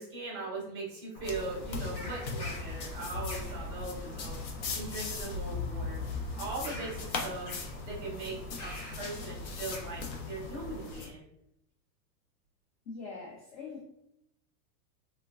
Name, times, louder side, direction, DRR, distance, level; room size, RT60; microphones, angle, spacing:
voice 1, 0.0-4.4 4.7-7.5 7.9-11.3, right 3 dB, 10° right, -7 dB, 0.5 m, -40 dB
Bird vocalization bird call bird song, 1.1-10.9, left 1 dB, 65° left, 1.0 m, -45 dB
sound 1, 1.2-11.1, left 4 dB, 80° left, 0.8 m, -39 dB
voice 2, 12.9-13.8, left 4 dB, 45° left, -4 dB, 0.5 m, -42 dB
3.1 x 2.1 x 2.4 m, 0.79 s
supercardioid pair, 170°, 49 cm